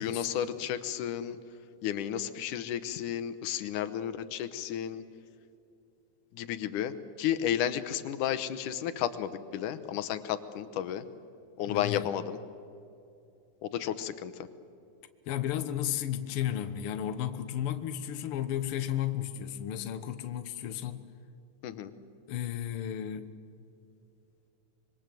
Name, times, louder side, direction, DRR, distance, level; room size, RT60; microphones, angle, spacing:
voice 1, 0.0-1.4 1.8-5.0 6.3-11.0 11.6-12.4 13.6-14.5 21.6-21.9, left 10 dB, 90° left, 12 dB, 2.5 m, -32 dB
voice 2, 11.7-12.0 15.3-21.1 22.3-23.3, left 11 dB, 60° left, 9 dB, 1.7 m, -33 dB
25.5 x 23.0 x 7.7 m, 2.6 s
omnidirectional pair, 3.5 m